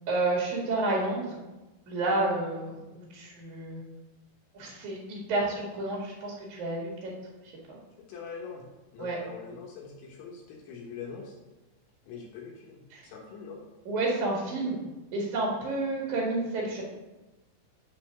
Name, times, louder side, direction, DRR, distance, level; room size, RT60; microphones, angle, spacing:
voice 1, 0.1-1.4 1.9-3.8 4.5-7.1 7.7-7.8 9.0-9.2 12.9-13.1 13.9-14.8 15.1-16.8, right 2 dB, 60° right, -3 dB, 2.1 m, -30 dB
voice 2, 8.1-8.6 8.9-11.4 12.1-13.6, left 5 dB, 70° left, -2 dB, 3.2 m, -43 dB
9.6 x 4.2 x 6.7 m, 1.1 s
omnidirectional pair, 5.9 m